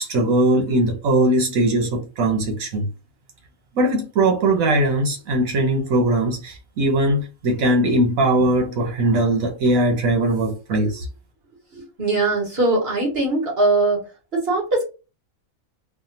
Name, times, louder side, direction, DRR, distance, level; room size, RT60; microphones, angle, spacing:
voice 1, 0.0-2.9 3.7-11.1, right 1 dB, 75° right, 1.4 m, -20 dB
voice 2, 12.0-14.0 14.3-14.8, right 2 dB, 45° right, 1.6 m, -20 dB
3.4 x 2.2 x 2.8 m
omnidirectional pair, 1.4 m